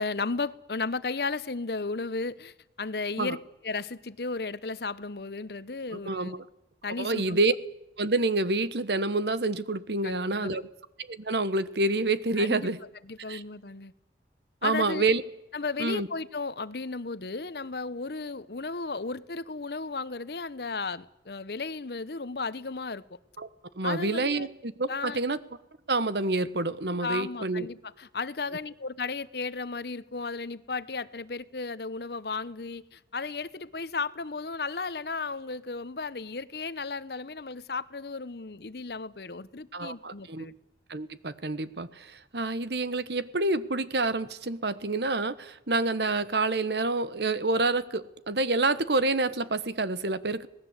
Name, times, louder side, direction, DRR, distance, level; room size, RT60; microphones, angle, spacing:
voice 1, 0.0-3.4 3.6-6.3 6.8-7.4 10.0-10.7 12.4-12.7 13.0-13.9 14.6-15.0 15.5-23.2 23.8-24.5 24.9-25.2 27.0-40.5, left 4 dB, 65° left, 16 dB, 0.9 m, -34 dB
voice 2, 6.0-6.4 7.0-7.5 8.0-10.6 11.1-12.8 13.3-13.4 14.6-15.2 15.8-16.1 23.4-23.5 23.7-25.4 25.9-27.7 39.7-40.5 40.9-50.5, right 2 dB, 70° right, 14 dB, 1.2 m, -28 dB
26.0 x 19.0 x 8.2 m, 0.86 s
head